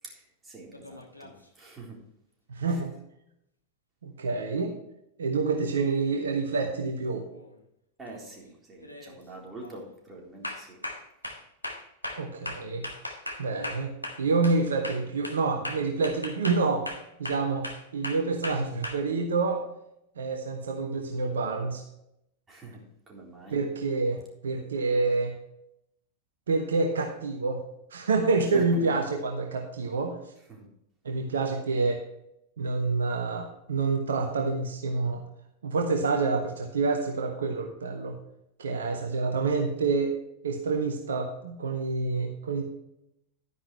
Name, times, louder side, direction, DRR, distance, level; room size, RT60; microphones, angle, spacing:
voice 1, 0.0-2.0 2.7-2.8 8.0-10.8 22.5-23.6 28.4-28.8 30.5-30.7, right 3 dB, 15° right, -2 dB, 3.9 m, -45 dB
sound 1, 0.7-1.4 5.7-5.8 7.3-7.6 8.0-8.4 8.8-9.2 9.6-9.8 10.4-14.6 14.8-18.9, left 1 dB, 85° left, 1.5 m, -38 dB
voice 2, 2.5-2.9 4.0-4.7 5.2-7.2 12.2-12.8 13.4-13.9 14.2-16.9 17.2-19.6 20.2-21.8 23.5-25.3 26.5-27.6 27.9-30.2 31.0-32.0 32.6-35.2 35.6-38.2 38.6-40.1 40.4-42.6, right 3 dB, 65° right, 3 dB, 1.3 m, -27 dB
11.5 x 10.0 x 3.2 m, 0.79 s
figure-of-eight pair, 90°, 0 cm